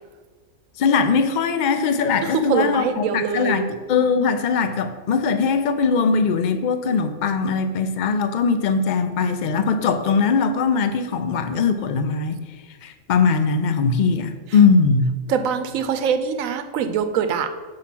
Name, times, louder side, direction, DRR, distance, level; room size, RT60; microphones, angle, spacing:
voice 1, 0.8-12.4 12.8-15.1, left 5 dB, 85° left, 9 dB, 0.4 m, -20 dB
voice 2, 2.5-3.6 15.3-17.5, right 7 dB, 80° right, 8 dB, 1.0 m, -23 dB
5.8 x 4.8 x 5.9 m, 1.4 s
omnidirectional pair, 1.4 m